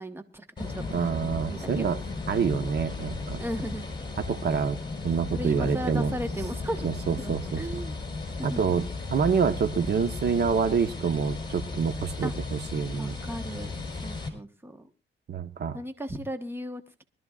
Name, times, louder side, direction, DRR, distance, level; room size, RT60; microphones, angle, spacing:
voice 1, 0.0-1.2 1.5-1.9 3.4-3.8 5.3-6.9 7.2-8.0 8.4-8.7 12.2-12.3 13.0-14.9 15.7-17.0, equal, 10° right, 8 dB, 1.2 m, -36 dB
sound 1, 0.6-14.3, left 3 dB, 25° left, 3.9 m, -35 dB
voice 2, 0.9-2.0 2.3-3.4 4.3-4.8 5.0-6.1 7.1-7.6 8.4-13.1 15.3-15.8, right 6 dB, 60° right, 10 dB, 1.2 m, -27 dB
23.5 x 13.0 x 2.4 m, 0.30 s
cardioid pair, 100°, 20 cm